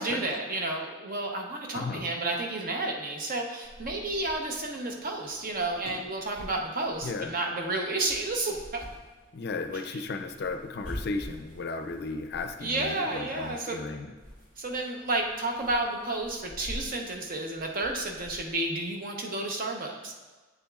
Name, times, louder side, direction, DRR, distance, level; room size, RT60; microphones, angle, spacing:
voice 1, 0.0-8.8 9.9-10.0 12.6-13.8 14.6-20.1, right 2 dB, 45° right, 1 dB, 0.8 m, -31 dB
voice 2, 1.7-2.1 7.0-7.3 9.3-14.1, left 3 dB, 55° left, 6 dB, 0.5 m, -35 dB
sound 1, 3.6-18.8, equal, 80° right, 2.3 m, -47 dB
8.2 x 7.0 x 2.4 m, 1.3 s
head